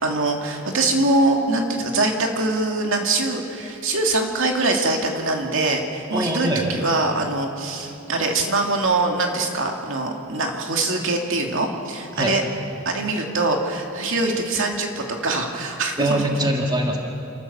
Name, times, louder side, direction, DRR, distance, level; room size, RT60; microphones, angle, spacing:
voice 1, 0.0-12.4 12.9-16.2, right 2 dB, 65° right, 2 dB, 2.3 m, -23 dB
voice 2, 6.1-6.8 12.2-12.4 16.0-17.0, right 1 dB, 20° right, 1 dB, 1.8 m, -23 dB
28.5 x 14.0 x 7.0 m, 2.6 s
head